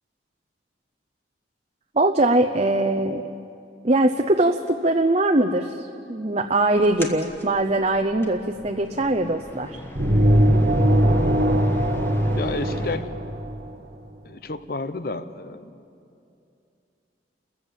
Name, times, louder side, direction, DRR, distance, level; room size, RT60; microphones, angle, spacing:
voice 1, 1.9-3.3 3.8-9.8, right 2 dB, 35° right, 5 dB, 0.7 m, -21 dB
sound 1, 6.8-13.0, left 1 dB, 15° left, 1.5 m, -40 dB
sound 2, 9.9-13.8, equal, 55° right, 1.6 m, -20 dB
voice 2, 12.4-13.1 14.2-15.8, left 3 dB, 55° left, 12 dB, 0.9 m, -31 dB
29.5 x 14.5 x 7.4 m, 2.6 s
head